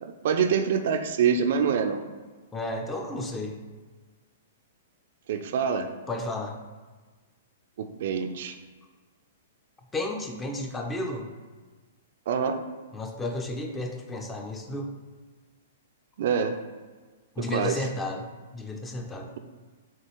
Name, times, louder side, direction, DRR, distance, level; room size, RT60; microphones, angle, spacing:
voice 1, 0.0-2.0 5.3-5.9 7.8-8.6 12.3-12.6 16.2-16.6 17.4-17.8, right 7 dB, 55° right, 7 dB, 0.4 m, -26 dB
voice 2, 2.5-3.6 6.1-6.6 9.9-11.3 12.9-14.9 17.4-19.3, left 2 dB, 15° left, 3 dB, 0.6 m, -32 dB
7.2 x 2.4 x 3.0 m, 1.4 s
figure-of-eight pair, 110°, 0 cm